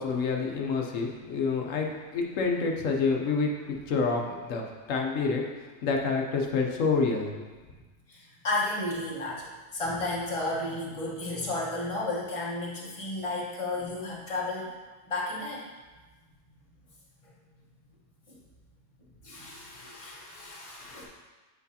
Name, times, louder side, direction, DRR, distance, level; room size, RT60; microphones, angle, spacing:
voice 1, 0.0-7.5 20.9-21.1, left 4 dB, 85° left, 1 dB, 1.1 m, -28 dB
voice 2, 8.1-14.7 15.0-15.7 18.3-18.4 19.2-21.1, left 2 dB, 25° left, -4 dB, 1.2 m, -33 dB
8.1 x 4.7 x 2.8 m, 1.3 s
omnidirectional pair, 1.3 m